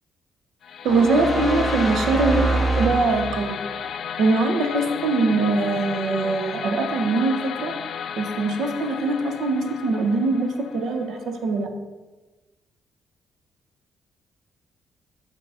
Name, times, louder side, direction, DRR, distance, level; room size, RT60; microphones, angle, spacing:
sound 1, 0.6-11.7, left 7 dB, 65° left, 0.3 m, -33 dB
voice 1, 0.8-2.5 2.8-3.6 4.2-7.7 8.2-11.7, right 3 dB, 75° right, 5 dB, 0.7 m, -22 dB
sound 2, 0.9-3.6, right 2 dB, 10° right, 0.7 m, -25 dB
5.5 x 3.8 x 4.9 m, 1.2 s
cardioid pair, 90°, 0 cm